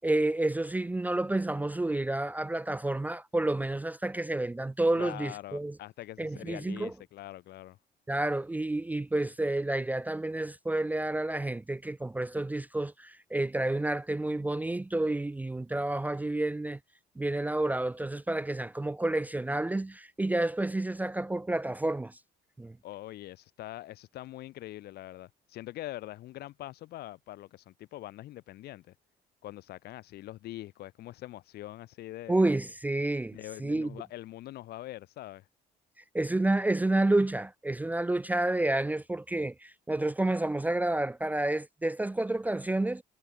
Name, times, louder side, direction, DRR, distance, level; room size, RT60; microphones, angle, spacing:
voice 1, 0.0-5.8 6.2-6.9 8.1-16.8 17.2-22.2 22.6-22.8 32.3-33.9 36.1-43.0, right 2 dB, 10° right, 0.4 m, -30 dB
voice 2, 4.9-7.8 22.8-28.9 29.4-32.4 33.3-35.5, left 15 dB, 70° left, 1.4 m, -43 dB
cardioid pair, 110°, 17 cm